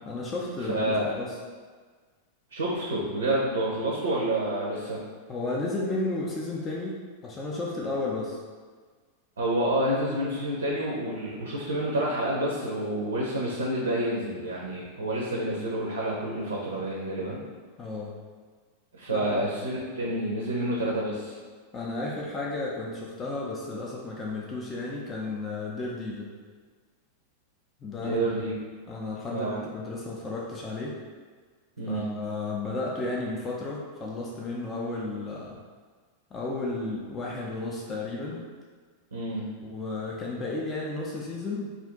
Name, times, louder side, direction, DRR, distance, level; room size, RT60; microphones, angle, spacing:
voice 1, 0.0-1.4 5.3-8.4 17.8-18.2 19.1-19.5 21.7-26.3 27.8-28.2 28.9-31.0 31.9-35.6 36.3-38.4 39.6-41.7, left 2 dB, 20° left, -4 dB, 0.5 m, -33 dB
voice 2, 0.7-1.2 2.5-5.0 9.4-17.4 18.9-21.4 28.0-28.5 29.3-29.6 31.8-32.1 39.1-39.5, right 1 dB, 70° right, -3 dB, 0.5 m, -28 dB
2.5 x 2.5 x 3.5 m, 1.5 s
figure-of-eight pair, 90°, 0 cm